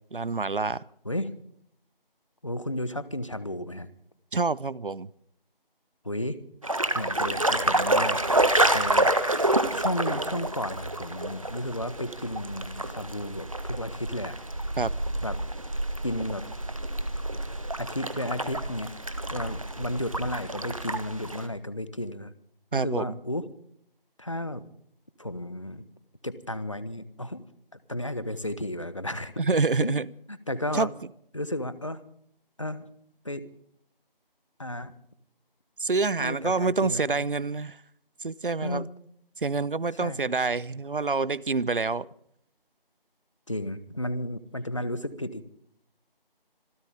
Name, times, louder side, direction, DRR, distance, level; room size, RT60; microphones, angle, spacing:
voice 1, 0.1-0.8 4.3-5.1 14.8-14.9 22.7-23.1 29.4-30.1 30.7-30.9 35.8-37.8 38.2-38.8 39.4-42.1, right 4 dB, 65° right, 0.7 m, -27 dB
voice 2, 2.4-3.9 6.0-6.4 6.9-9.1 9.7-14.4 15.2-15.4 16.0-16.4 17.8-18.9 19.3-22.3 22.7-23.5 24.2-24.6 25.2-25.8 26.2-27.4 27.7-29.3 29.8-30.0 30.3-30.9 31.3-32.0 32.6-32.9 33.2-33.5 34.6-35.0 36.2-37.2 38.6-38.9 40.0-40.4 43.5-45.5, left 1 dB, 35° left, 1.1 m, -33 dB
sound 1, 6.6-21.5, right 1 dB, 35° right, 1.3 m, -28 dB
26.5 x 14.5 x 3.6 m
figure-of-eight pair, 175°, 29 cm